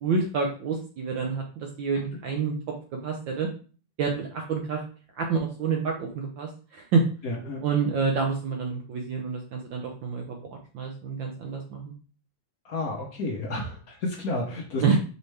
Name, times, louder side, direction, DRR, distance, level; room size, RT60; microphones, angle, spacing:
voice 1, 0.0-2.5 3.0-3.5 4.0-4.8 5.2-7.0 7.6-11.9 14.8-15.0, right 5 dB, 70° right, 1 dB, 1.3 m, -28 dB
voice 2, 7.2-7.6 12.6-15.0, left 2 dB, 70° left, 1 dB, 0.8 m, -31 dB
5.3 x 3.1 x 3.2 m, 0.38 s
omnidirectional pair, 2.4 m